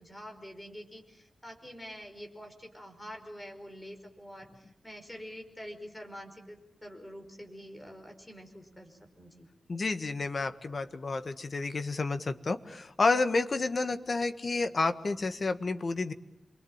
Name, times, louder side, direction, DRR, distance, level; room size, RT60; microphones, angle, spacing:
voice 1, 0.0-9.5, equal, 10° left, 4 dB, 5.2 m, -46 dB
voice 2, 9.7-16.1, left 3 dB, 45° left, 9 dB, 1.6 m, -30 dB
28.0 x 23.5 x 8.9 m, 0.85 s
wide cardioid pair, 150°, 0 cm